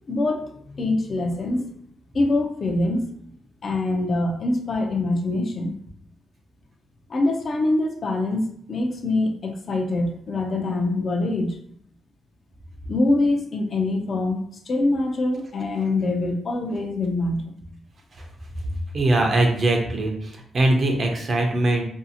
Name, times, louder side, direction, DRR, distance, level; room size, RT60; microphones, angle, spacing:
voice 1, 0.1-1.7 2.1-3.1 3.6-5.8 7.1-11.6 12.9-17.5, left 2 dB, 45° left, 2 dB, 0.5 m, -24 dB
voice 2, 18.9-21.8, right 2 dB, 40° right, 2 dB, 0.5 m, -21 dB
2.6 x 2.4 x 2.7 m, 0.64 s
cardioid pair, 120°, 0 cm